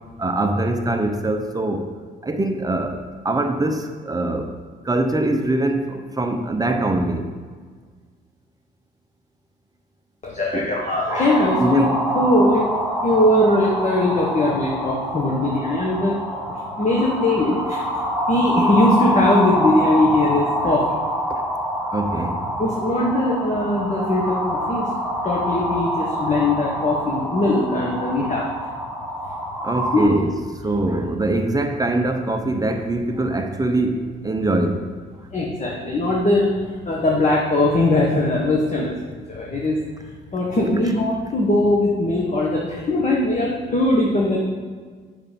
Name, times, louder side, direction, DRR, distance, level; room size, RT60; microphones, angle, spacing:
voice 1, 0.2-1.9 2.2-4.5 4.8-7.3 10.5-10.7 11.6-11.9 20.6-20.7 21.3-21.4 21.9-22.4 29.6-30.3 30.6-34.8, right 2 dB, 20° right, 5 dB, 0.9 m, -23 dB
voice 2, 10.2-11.8 12.1-12.7 13.0-16.1 16.5-17.8 18.3-21.0 22.6-24.9 25.2-28.5 29.9-30.1 35.3-36.6 36.8-38.9 39.3-39.8 40.3-44.4, left 1 dB, 35° left, -3 dB, 1.5 m, -20 dB
sound 1, 11.1-30.1, equal, ahead, 1.5 m, -26 dB
8.0 x 6.8 x 5.4 m, 1.5 s
cardioid pair, 90°, 20 cm